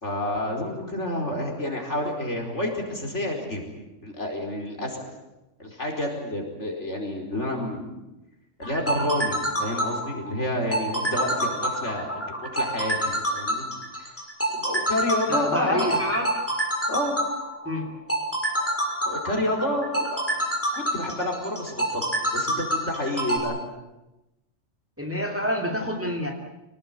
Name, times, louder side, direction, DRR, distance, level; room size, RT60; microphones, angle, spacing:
voice 1, 0.0-3.7 4.0-5.0 5.6-7.9 8.6-13.6 14.0-14.1 14.5-16.0 16.9-17.2 19.0-20.2 20.7-22.1 22.3-23.5, left 1 dB, 60° left, 1 dB, 5.1 m, -29 dB
sound 1, 8.6-23.4, right 1 dB, 10° left, 5.9 m, -27 dB
voice 2, 15.3-16.3 17.6-17.9 25.0-26.3, equal, 10° right, 2 dB, 2.8 m, -27 dB
25.5 x 18.5 x 9.2 m, 0.97 s
omnidirectional pair, 1.4 m